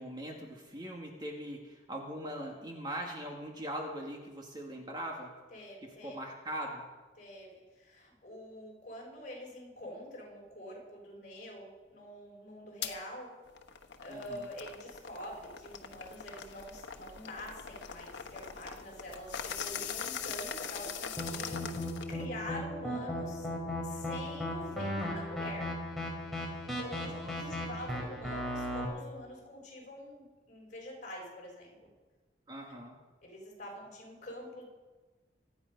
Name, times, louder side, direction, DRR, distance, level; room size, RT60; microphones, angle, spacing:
voice 1, 0.0-5.3 5.8-6.9 14.1-14.5 27.0-27.4 28.0-28.3 32.5-33.0, equal, 25° right, 0 dB, 2.0 m, -41 dB
voice 2, 5.5-6.2 7.2-13.3 14.0-23.5 23.8-25.7 26.6-31.9 33.2-34.6, left 1 dB, 45° left, -1 dB, 5.7 m, -46 dB
sound 1, 12.8-13.0 13.5-22.3, left 7 dB, 85° left, 1.1 m, -42 dB
sound 2, 21.2-28.8, left 1 dB, ahead, 3.4 m, -36 dB
25.0 x 9.5 x 5.3 m, 1.2 s
head